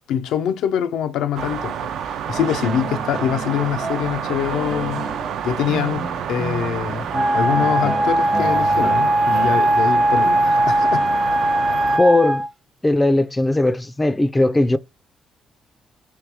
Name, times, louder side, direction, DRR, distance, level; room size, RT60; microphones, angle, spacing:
voice 1, 0.1-1.8 2.0-5.1 5.4-11.1, left 9 dB, 90° left, 0.4 m, -24 dB
sound 1, 1.3-12.0, right 8 dB, 80° right, 0.4 m, -29 dB
sound 2, 2.3-9.6, right 3 dB, 50° right, 1.1 m, -32 dB
Wind instrument woodwind instrument, 7.1-12.5, right 1 dB, 30° right, 0.7 m, -19 dB
voice 2, 12.0-12.4 12.8-14.8, left 2 dB, 15° left, 0.3 m, -18 dB
3.1 x 3.0 x 3.3 m
cardioid pair, 90°, 0 cm